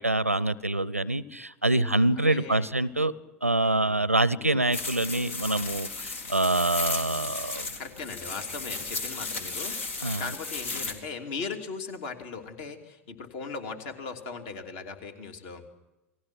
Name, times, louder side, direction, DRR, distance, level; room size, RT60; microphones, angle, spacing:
voice 1, 0.0-3.1 3.4-7.7 10.0-10.2, right 2 dB, 90° right, 21 dB, 0.7 m, -26 dB
voice 2, 1.7-2.7 3.6-4.7 7.8-15.6, left 4 dB, 50° left, 5 dB, 2.9 m, -39 dB
sound 1, 4.7-10.9, left 3 dB, 65° left, 3.0 m, -35 dB
29.0 x 19.0 x 6.1 m, 1.0 s
figure-of-eight pair, 85°, 7 cm